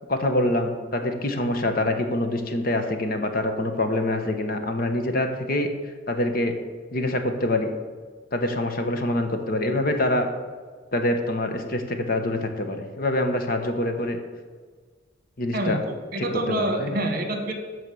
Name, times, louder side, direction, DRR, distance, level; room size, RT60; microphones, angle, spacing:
voice 1, 0.1-5.7 6.1-6.5 6.9-7.7 8.3-10.3 10.9-14.2 15.4-15.8 16.5-17.0, left 1 dB, 50° left, 6 dB, 1.1 m, -25 dB
voice 2, 15.5-17.5, right 1 dB, 50° right, 6 dB, 1.3 m, -27 dB
12.5 x 4.7 x 7.0 m, 1.5 s
head